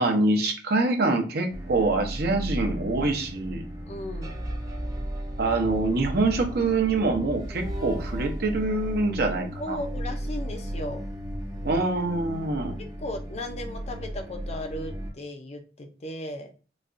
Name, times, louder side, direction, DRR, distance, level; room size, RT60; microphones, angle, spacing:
voice 1, 0.0-3.6 5.4-9.8 11.6-12.7, right 2 dB, 60° right, 3 dB, 0.7 m, -25 dB
sound 1, 1.5-15.1, equal, 20° right, 0.5 m, -35 dB
voice 2, 3.9-4.4 9.6-11.0 12.8-16.5, left 1 dB, 35° left, 4 dB, 0.5 m, -36 dB
4.1 x 2.3 x 2.5 m, 0.36 s
head